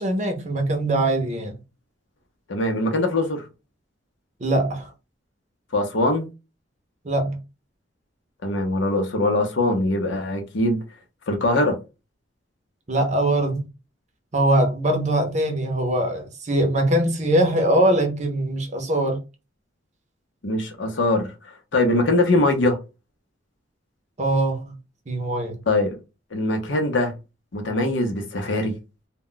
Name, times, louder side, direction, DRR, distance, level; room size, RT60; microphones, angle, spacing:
voice 1, 0.0-1.6 4.4-4.9 7.0-7.4 12.9-13.6 14.3-19.2 24.2-24.7 25.1-25.6, right 1 dB, 40° right, 0.6 m, -22 dB
voice 2, 2.5-3.4 5.7-6.3 8.4-10.8 11.3-11.8 20.4-22.8 25.7-26.0 26.3-27.1 27.5-28.7, left 2 dB, 75° left, 0.6 m, -22 dB
2.2 x 2.1 x 3.7 m
head